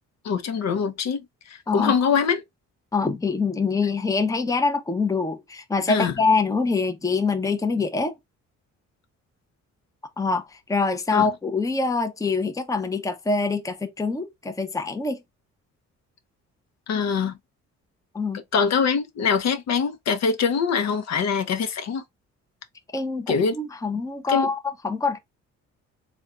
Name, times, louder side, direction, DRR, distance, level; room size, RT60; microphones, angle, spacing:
voice 1, 0.2-2.4 5.9-6.1 11.1-11.2 16.9-17.3 18.5-22.0 23.3-23.5 24.3-24.5, left 6 dB, 60° left, 0.7 m, -23 dB
voice 2, 2.9-8.1 10.2-15.2 18.1-18.4 22.9-24.6 24.8-25.2, left 4 dB, 10° left, 0.6 m, -24 dB
3.5 x 2.3 x 3.6 m
cardioid pair, 90°, 30 cm